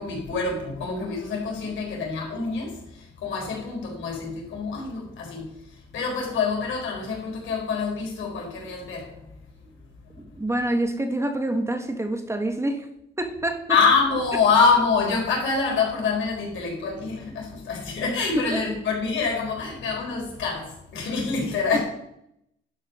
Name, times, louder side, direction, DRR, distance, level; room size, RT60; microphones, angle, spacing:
voice 1, 0.0-9.7 10.3-10.4 13.7-21.8, left 4 dB, 75° left, 4.3 m, -26 dB
voice 2, 10.4-12.9 13.2-13.6 18.5-18.6, right 1 dB, 15° right, 1.4 m, -26 dB
11.5 x 5.6 x 6.0 m
cardioid pair, 90°, 20 cm